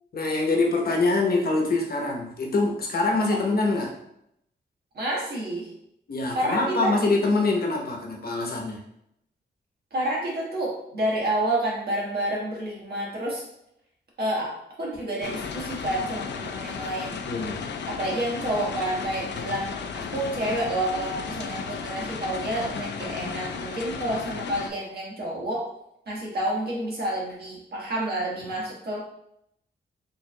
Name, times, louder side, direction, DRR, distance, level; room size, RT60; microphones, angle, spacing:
voice 1, 0.1-3.9 6.1-8.8 17.3-17.6, left 3 dB, 60° left, 0 dB, 0.9 m, -24 dB
voice 2, 4.9-5.7 6.3-7.0 9.9-13.4 14.2-17.2 17.9-25.7 26.1-29.1, right 1 dB, 60° right, -4 dB, 1.4 m, -29 dB
sound 1, 15.2-24.7, left 6 dB, 80° left, 0.4 m, -34 dB
4.5 x 3.4 x 2.2 m, 0.76 s
wide cardioid pair, 125°, 18 cm